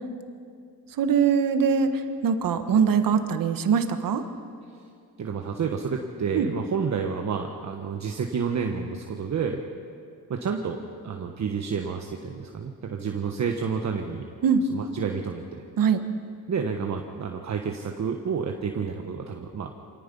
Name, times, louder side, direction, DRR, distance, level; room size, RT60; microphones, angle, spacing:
voice 1, 1.0-1.9 2.2-4.2 6.3-6.5 14.4-14.6 15.8-16.0, right 6 dB, 65° right, 8 dB, 1.5 m, -22 dB
voice 2, 5.2-9.6 10.3-14.2 14.7-15.6 16.5-19.7, right 6 dB, 50° right, 3 dB, 1.3 m, -30 dB
26.0 x 18.0 x 5.5 m, 2.4 s
cardioid pair, 115°, 36 cm